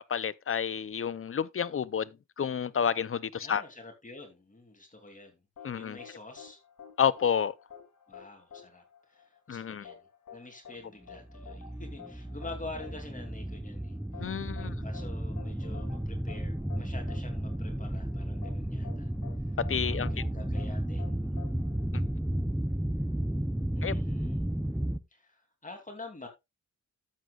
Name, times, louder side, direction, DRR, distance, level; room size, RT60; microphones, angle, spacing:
voice 1, 0.1-2.1 2.4-3.6 5.6-6.0 7.0-7.5 9.5-9.8 14.2-14.8 19.7-20.1 21.9-22.0 23.8-23.9, left 7 dB, 45° left, 0.6 m, -30 dB
voice 2, 3.4-5.4 5.7-6.6 8.1-8.8 9.1-10.0 10.3-19.1 19.8-21.3 23.7-24.5 25.1-26.3, left 2 dB, 25° left, 2.8 m, -47 dB
sound 1, 5.6-22.4, left 7 dB, 75° left, 3.0 m, -51 dB
sound 2, 11.1-25.0, right 1 dB, 5° right, 0.6 m, -33 dB
13.0 x 7.7 x 2.4 m
wide cardioid pair, 90°, 31 cm